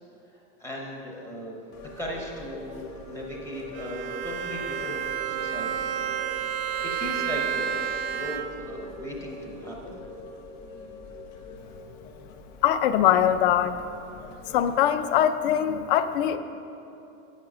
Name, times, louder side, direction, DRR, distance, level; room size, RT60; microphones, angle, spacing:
voice 1, 0.3-2.8 3.1-5.9 6.5-10.0, left 1 dB, 5° left, -2 dB, 0.6 m, -37 dB
sound 1, 1.7-14.7, left 1 dB, 35° left, 1.1 m, -43 dB
Bowed string instrument, 3.7-8.8, right 9 dB, 50° right, 0.6 m, -31 dB
voice 2, 12.6-13.8 14.5-16.4, left 10 dB, 50° left, 11 dB, 0.5 m, -22 dB
8.4 x 7.3 x 6.3 m, 2.8 s
supercardioid pair, 180°, 35 cm